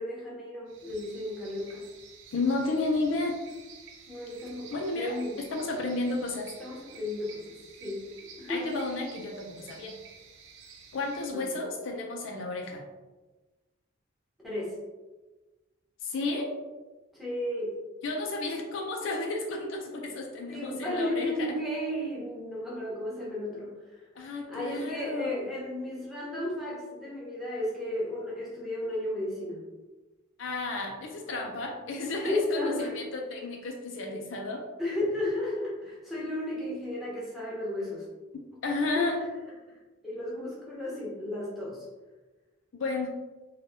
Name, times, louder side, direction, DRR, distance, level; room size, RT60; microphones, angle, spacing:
voice 1, 0.0-1.9 4.1-5.4 6.6-8.0 8.4-8.8 11.3-11.6 14.4-14.8 17.1-17.8 19.9-20.1 20.5-24.1 24.5-29.7 32.1-33.0 34.1-34.2 34.8-38.1 38.9-39.3 40.0-41.9, left 1 dB, ahead, -7 dB, 0.9 m, -34 dB
sound 1, 0.7-11.3, right 5 dB, 65° right, 0.5 m, -51 dB
voice 2, 2.3-3.3 4.7-5.1 5.5-6.5 8.5-9.9 10.9-12.8 16.0-16.5 18.0-21.5 24.2-25.4 30.4-34.6 38.6-39.2 42.7-43.1, left 2 dB, 65° left, 1 dB, 0.4 m, -32 dB
3.3 x 2.2 x 2.6 m, 1.2 s
head